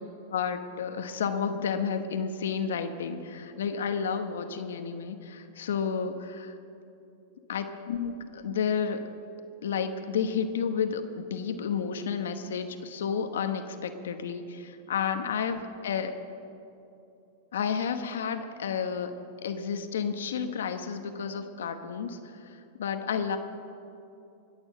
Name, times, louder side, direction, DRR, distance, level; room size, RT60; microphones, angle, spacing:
voice 1, 0.3-6.5 7.5-9.0 9.6-16.1 17.5-19.1 19.4-23.4, left 6 dB, 85° left, 8 dB, 1.0 m, -31 dB
20.5 x 7.1 x 7.4 m, 2.8 s
hypercardioid pair, 125°, 0 cm